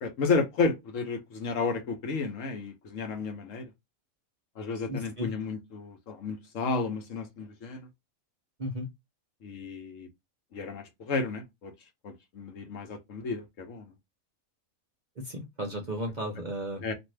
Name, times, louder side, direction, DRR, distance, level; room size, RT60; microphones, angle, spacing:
voice 1, 0.0-3.7 4.6-7.9 9.4-10.1 10.5-11.7 12.0-13.8 16.8-16.9, left 4 dB, 65° left, 1.1 m, -32 dB
voice 2, 4.9-5.3 8.6-8.9 15.2-16.8, equal, 45° right, 0.6 m, -34 dB
2.6 x 2.5 x 3.1 m
omnidirectional pair, 1.5 m